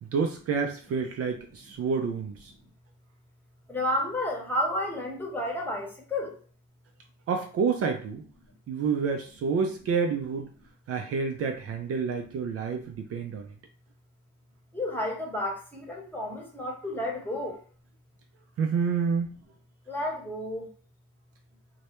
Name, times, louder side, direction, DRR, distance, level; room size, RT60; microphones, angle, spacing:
voice 1, 0.0-2.5 7.3-8.2 8.7-10.5 10.9-13.5 18.6-19.4, right 5 dB, 50° right, 4 dB, 0.4 m, -28 dB
voice 2, 3.7-6.3 14.7-17.6 19.9-20.7, left 1 dB, 5° left, -1 dB, 0.9 m, -31 dB
2.2 x 2.1 x 2.9 m, 0.41 s
cardioid pair, 90°, 30 cm